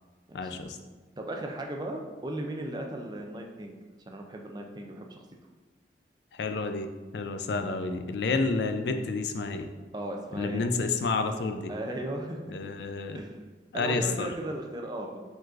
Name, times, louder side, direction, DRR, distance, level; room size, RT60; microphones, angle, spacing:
voice 1, 0.3-0.8 6.3-6.9 7.1-9.7 10.3-11.7 12.5-13.2 13.7-14.3, left 3 dB, 80° left, 7 dB, 0.4 m, -30 dB
voice 2, 1.2-3.8 4.1-5.2 9.9-10.6 11.7-12.4 13.1-13.3 13.7-15.2, right 1 dB, 25° right, 2 dB, 0.4 m, -36 dB
5.0 x 3.8 x 2.5 m, 1.3 s
head